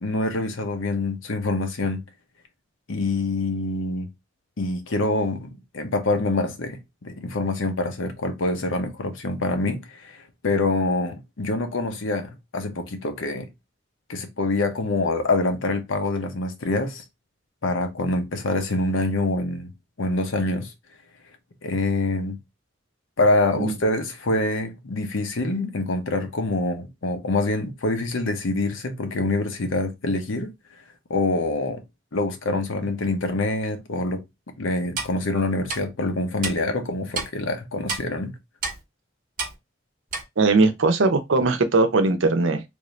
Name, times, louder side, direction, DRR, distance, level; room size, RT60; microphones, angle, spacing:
voice 1, 0.0-2.0 2.9-4.1 4.6-13.5 14.1-17.0 17.6-19.7 20.0-20.7 21.6-22.4 23.2-30.5 31.1-31.8 32.1-34.2 34.6-38.4, left 2 dB, 85° left, 0.8 m, -25 dB
Clock, 35.0-35.1 35.7-35.8 36.4-36.5 37.1-37.3 37.9-38.0 38.6-38.8 39.4-39.5 40.1-40.2, right 4 dB, 50° right, 1.1 m, -28 dB
voice 2, 40.4-42.6, right 3 dB, 75° right, 0.6 m, -20 dB
3.4 x 2.6 x 3.2 m
head